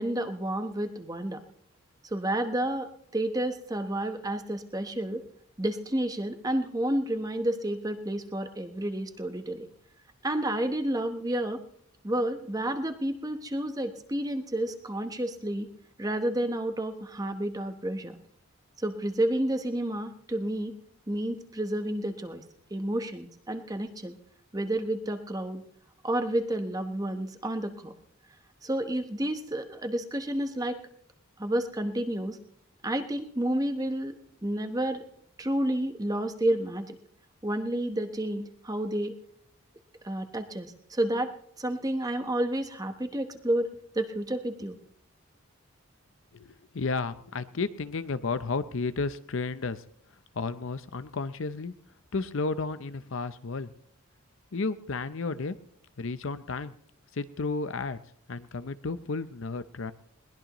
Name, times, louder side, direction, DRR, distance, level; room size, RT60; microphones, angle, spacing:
voice 1, 0.0-1.4 2.0-5.2 5.6-9.6 10.2-11.6 12.0-15.7 16.0-18.2 18.8-20.7 21.1-22.4 22.7-24.1 24.5-25.6 26.0-27.9 28.6-30.8 31.4-32.4 32.8-34.2 34.4-35.0 35.4-37.0 37.4-39.1 40.0-43.7 43.9-44.8, right 1 dB, 15° right, 7 dB, 1.0 m, -30 dB
voice 2, 46.3-49.8 50.3-51.7 52.1-53.7 54.5-55.6 56.0-56.7 57.1-58.0 58.3-59.9, left 4 dB, 60° left, 13 dB, 0.6 m, -32 dB
21.0 x 19.0 x 3.0 m, 0.65 s
head